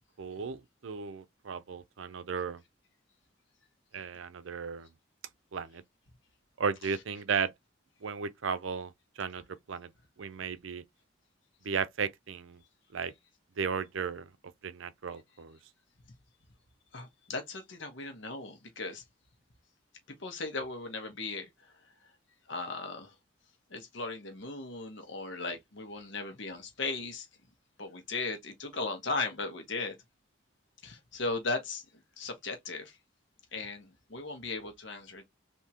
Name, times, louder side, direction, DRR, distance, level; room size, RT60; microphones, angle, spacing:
voice 1, 0.2-2.6 3.9-4.9 5.5-5.8 6.6-7.5 8.0-8.9 9.2-9.9 10.2-10.8 11.6-12.6 12.9-13.1 13.6-14.3 14.6-15.6, right 6 dB, 70° right, 0.5 m, -35 dB
voice 2, 16.9-19.0 20.2-21.7 22.5-23.1 23.7-27.3 27.8-29.9 30.8-31.8 32.2-33.0 33.5-35.2, left 3 dB, 65° left, 1.1 m, -37 dB
3.5 x 2.8 x 2.8 m
head